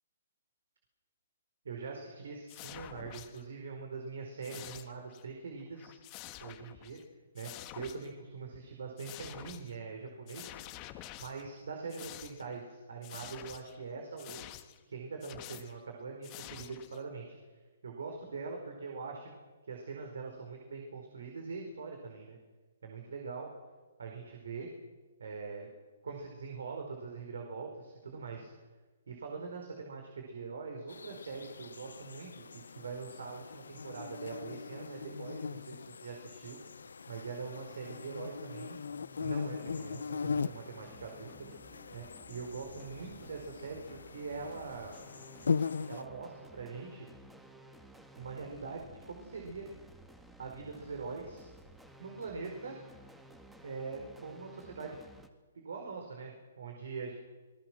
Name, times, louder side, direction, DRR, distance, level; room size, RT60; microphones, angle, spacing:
voice 1, 1.6-5.9 6.4-7.0 7.3-7.5 7.7-10.5 11.2-14.5 14.9-17.2 17.8-19.3 19.7-22.4 22.8-23.5 24.0-24.7 25.2-25.7 26.0-28.5 29.1-36.6 37.1-38.8 39.2-41.5 41.9-44.9 45.9-47.1 48.2-49.7 50.4-51.5 52.0-52.7 53.6-55.0 55.5-57.1, right 4 dB, 75° right, 2 dB, 4.8 m, -43 dB
sound 1, 2.5-3.4 4.4-5.2 5.6-7.0 7.4-8.1 9.0-9.8 10.3-11.6 11.9-12.5 13.0-13.8 14.2-14.8 15.2-15.8 16.2-17.0, left 15 dB, 30° left, 1.6 m, -48 dB
sound 2, 30.9-46.0, left 5 dB, 85° left, 0.6 m, -40 dB
sound 3, 38.9-55.3, right 1 dB, 5° right, 2.2 m, -56 dB
28.0 x 20.5 x 6.3 m, 1.3 s
hypercardioid pair, 145°, 0 cm